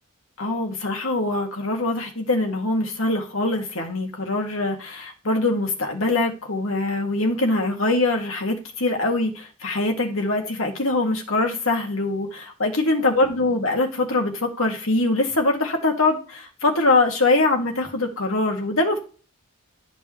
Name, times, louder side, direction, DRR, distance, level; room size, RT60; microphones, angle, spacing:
voice 1, 0.4-19.0, left 2 dB, 70° left, 2 dB, 2.0 m, -23 dB
11.5 x 5.3 x 3.1 m, 0.36 s
head